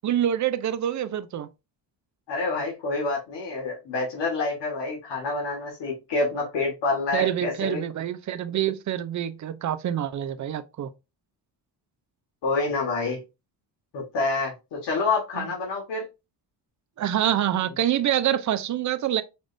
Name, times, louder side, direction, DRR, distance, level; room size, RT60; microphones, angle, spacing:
voice 1, 0.0-1.5 7.1-10.9 15.4-15.5 17.0-19.2, right 11 dB, 45° right, 0.5 m, -26 dB
voice 2, 2.3-7.8 12.4-13.2 13.9-16.0, left 3 dB, 80° left, 1.9 m, -27 dB
5.1 x 3.4 x 2.6 m
cardioid pair, 135°, 41 cm